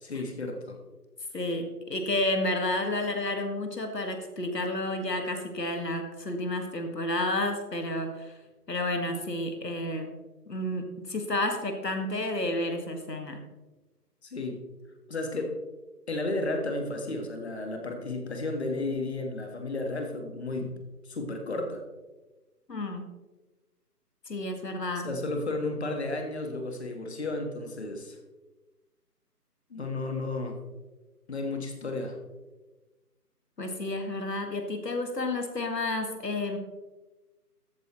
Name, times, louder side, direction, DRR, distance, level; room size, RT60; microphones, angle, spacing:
voice 1, 0.0-0.8 14.2-14.6 15.1-15.5 16.1-20.7 21.0-21.8 25.0-28.2 29.7-30.6 31.3-32.2, left 2 dB, 40° left, 4 dB, 1.6 m, -33 dB
voice 2, 1.3-8.3 8.7-10.2 10.5-13.4 22.7-23.0 24.3-25.1 33.6-36.6, left 1 dB, 85° left, 5 dB, 2.0 m, -31 dB
13.5 x 8.1 x 3.1 m, 1.2 s
figure-of-eight pair, 160°, 48 cm